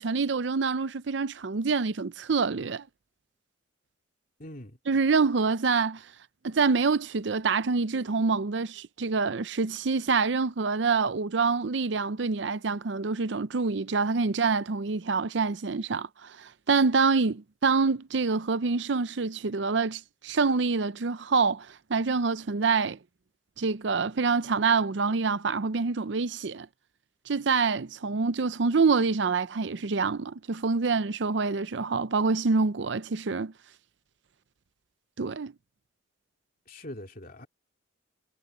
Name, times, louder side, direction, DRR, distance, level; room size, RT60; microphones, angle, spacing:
voice 1, 0.0-2.8 4.9-6.0 6.4-23.0 23.6-26.7 27.3-33.5 35.2-35.5, right 4 dB, 65° right, 0.6 m, -26 dB
voice 2, 4.4-4.8 36.7-37.5, left 1 dB, 50° left, 2.8 m, -42 dB
head